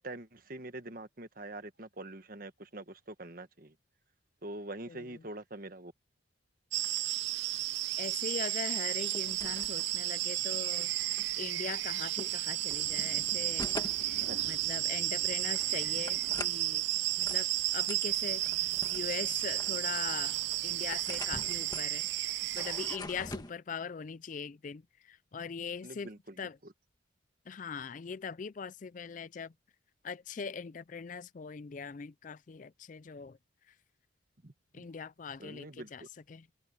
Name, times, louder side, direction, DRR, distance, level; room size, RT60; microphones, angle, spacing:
voice 1, 0.0-3.7 4.4-5.9 14.3-14.4 25.8-26.7 34.4-34.8 35.4-36.1, right 2 dB, 45° right, 1.4 m, -45 dB
sound 1, 6.7-23.0, right 16 dB, 60° right, 0.4 m, -33 dB
voice 2, 8.0-16.9 17.2-17.5 17.7-20.4 20.6-26.1 26.4-26.6 27.5-29.5 30.0-33.4 34.7-36.0 36.3-36.5, left 6 dB, 40° left, 0.4 m, -41 dB
sound 2, 8.9-23.5, left 2 dB, 20° left, 1.5 m, -47 dB
sound 3, 12.7-17.2, left 1 dB, 65° left, 2.2 m, -53 dB
open air
head